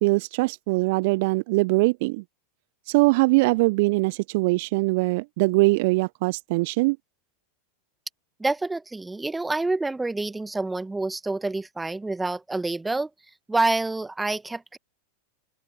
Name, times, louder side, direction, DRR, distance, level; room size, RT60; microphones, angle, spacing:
voice 1, 0.0-2.2 2.9-7.0, right 24 dB, 50° right, 0.6 m, -22 dB
voice 2, 8.4-13.1 13.5-14.8, right 2 dB, 10° right, 1.2 m, -27 dB
open air
figure-of-eight pair, 85°, 0 cm